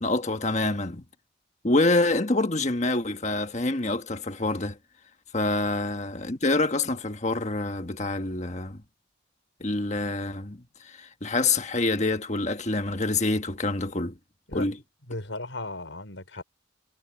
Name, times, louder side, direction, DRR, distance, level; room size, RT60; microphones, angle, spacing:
voice 1, 0.0-1.0 1.6-4.8 5.3-8.8 9.6-14.1 14.5-14.8, left 2 dB, 35° left, 1.4 m, -26 dB
voice 2, 15.1-16.4, left 2 dB, 75° left, 5.6 m, -36 dB
head